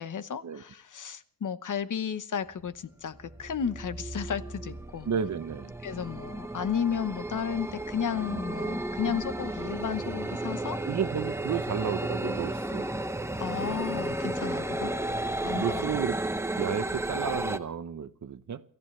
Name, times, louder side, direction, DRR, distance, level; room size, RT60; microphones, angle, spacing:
voice 1, 0.0-5.1 5.8-10.8 12.7-12.8 13.4-14.9 15.4-15.8, left 7 dB, 65° left, 1.0 m, -33 dB
sound 1, 2.6-2.7 3.1-17.6, right 1 dB, 10° right, 0.8 m, -33 dB
voice 2, 5.1-5.7 10.9-12.9 15.5-16.2 16.6-18.6, right 7 dB, 55° right, 0.8 m, -32 dB
28.5 x 14.5 x 3.2 m
wide cardioid pair, 145°, 34 cm